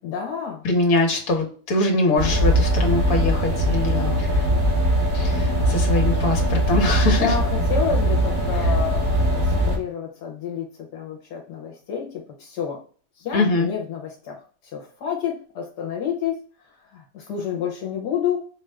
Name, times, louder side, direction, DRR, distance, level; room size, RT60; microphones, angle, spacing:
voice 1, 0.0-0.6 3.8-4.3 6.0-6.4 7.1-12.8 13.2-18.5, left 8 dB, 80° left, 0 dB, 1.4 m, -30 dB
voice 2, 0.6-4.3 5.1-7.3 13.3-13.7, left 2 dB, 60° left, 2 dB, 1.5 m, -22 dB
sound 1, 2.2-9.8, equal, 60° right, 2.6 m, -21 dB
4.9 x 2.5 x 3.2 m, 0.43 s
omnidirectional pair, 1.7 m